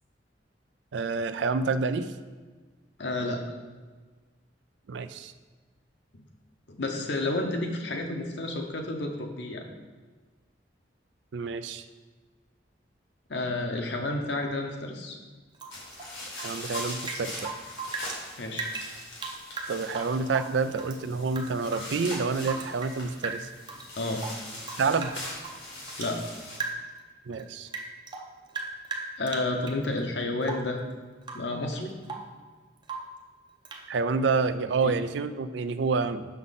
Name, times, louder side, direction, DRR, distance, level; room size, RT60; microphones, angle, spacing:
voice 1, 0.9-2.1 4.9-5.3 11.3-11.8 16.4-17.5 19.7-23.5 24.8-25.2 27.3-27.7 33.9-36.3, right 4 dB, 75° right, 11 dB, 0.4 m, -28 dB
voice 2, 3.0-3.4 6.7-9.7 13.3-15.2 18.4-18.7 23.9-24.2 26.0-26.3 29.2-30.8 31.3-31.9 34.8-35.0, left 2 dB, 65° left, 3 dB, 0.9 m, -31 dB
Rain / Drip, 15.6-18.2 18.5-21.0 21.3-23.0 23.2-23.9 24.2-26.2 26.5-27.0 27.3-29.8 30.4-30.8 31.2-31.5 31.8-32.4 32.8-33.2 33.7-33.9, right 4 dB, 25° right, 0.6 m, -38 dB
sound 1, 15.7-26.6, left 1 dB, 90° left, 2.3 m, -41 dB
6.2 x 5.5 x 4.1 m, 1.4 s
head